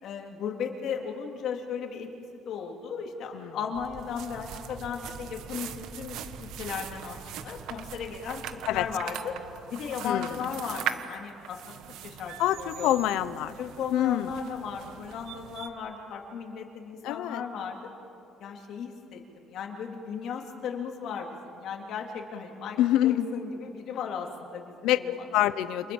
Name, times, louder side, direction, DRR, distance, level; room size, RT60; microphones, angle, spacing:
voice 1, 0.0-2.1 2.4-8.4 8.7-9.4 9.7-11.8 12.0-12.9 13.6-17.9 18.4-22.8 23.0-25.0, left 6 dB, 50° left, 2 dB, 3.4 m, -36 dB
sound 1, 3.7-9.0, right 4 dB, 35° right, 1.5 m, -47 dB
sound 2, 4.0-15.7, right 10 dB, 65° right, 1.4 m, -41 dB
voice 2, 10.0-10.4 12.4-13.5 13.9-14.3 17.0-17.4 22.8-23.3 24.8-25.9, left 13 dB, 80° left, 14 dB, 1.0 m, -26 dB
29.5 x 27.0 x 7.3 m, 2.8 s
cardioid pair, 170°, 0 cm